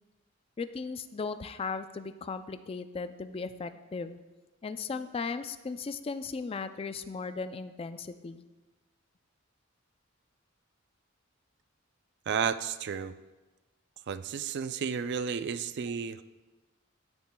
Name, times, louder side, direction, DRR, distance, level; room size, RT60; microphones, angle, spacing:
voice 1, 0.6-4.2 4.6-8.5, left 4 dB, 30° left, 11 dB, 0.3 m, -37 dB
voice 2, 12.3-13.1 14.1-16.2, right 7 dB, 55° right, 12 dB, 0.4 m, -32 dB
15.0 x 7.3 x 2.2 m, 1.2 s
head